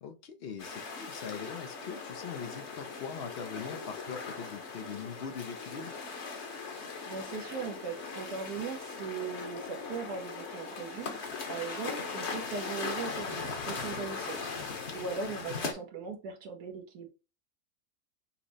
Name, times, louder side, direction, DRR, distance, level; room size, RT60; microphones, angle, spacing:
voice 1, 0.0-5.9, left 7 dB, 75° left, 0.5 m, -42 dB
sound 1, 0.6-15.7, left 4 dB, 50° left, 1.1 m, -39 dB
voice 2, 7.1-17.1, right 5 dB, 90° right, 1.4 m, -39 dB
5.7 x 2.0 x 4.0 m
omnidirectional pair, 1.6 m